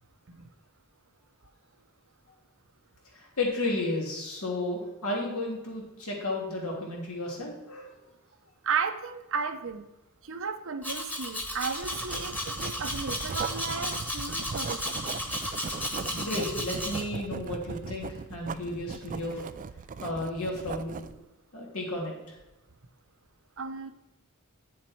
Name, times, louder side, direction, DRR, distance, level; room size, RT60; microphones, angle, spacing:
voice 1, 3.1-7.9 16.2-19.4 20.0-21.0 21.5-22.4, left 2 dB, 80° left, -2 dB, 3.2 m, -33 dB
voice 2, 8.6-9.9 10.2-14.8 16.1-16.3 17.7-17.8 20.2-20.3 23.6-23.9, right 5 dB, 65° right, 9 dB, 0.8 m, -34 dB
Domestic sounds home sounds, 10.8-17.0, left 1 dB, 10° left, 1.4 m, -34 dB
Writing, 11.8-21.2, right 4 dB, 40° right, 0.4 m, -39 dB
9.5 x 7.3 x 4.6 m, 0.99 s
head